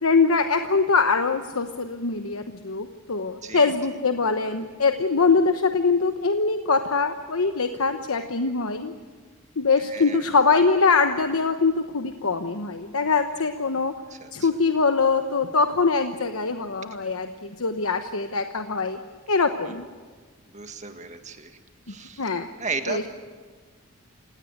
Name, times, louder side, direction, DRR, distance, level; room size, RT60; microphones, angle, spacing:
voice 1, 0.0-8.9 9.6-13.9 14.3-19.0 19.3-19.8 22.2-22.5 22.9-23.0, left 4 dB, 75° left, 7 dB, 1.1 m, -23 dB
voice 2, 3.4-3.7 9.9-10.2 14.1-14.5 20.5-21.5 21.9-22.3 22.6-23.1, right 4 dB, 35° right, 7 dB, 1.7 m, -34 dB
28.5 x 17.5 x 8.0 m, 1.5 s
head